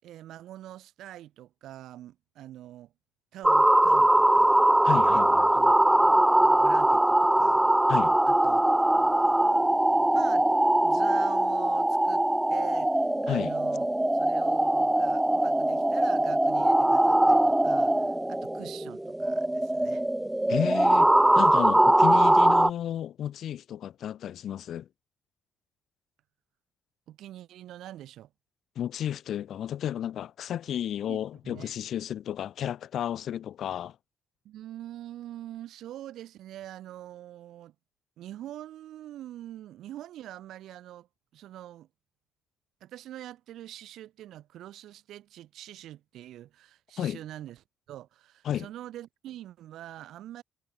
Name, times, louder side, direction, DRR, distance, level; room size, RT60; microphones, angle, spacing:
voice 1, 0.0-2.9 3.3-4.6 5.1-5.3 5.5-7.6 8.3-9.7 10.1-10.5 10.8-13.9 14.1-20.0 27.1-28.3 31.1-31.2 31.4-31.7 34.4-37.7 38.2-41.1 41.3-41.9 42.8-50.4, right 13 dB, 80° right, 7.4 m, -44 dB
sound 1, 3.4-22.7, right 1 dB, 10° right, 0.3 m, -22 dB
voice 2, 4.8-5.5 7.9-8.2 13.3-13.5 20.5-21.1 21.3-24.9 28.7-33.9 47.0-47.2 48.4-48.7, left 10 dB, 65° left, 4.9 m, -32 dB
cardioid pair, 100°, 0 cm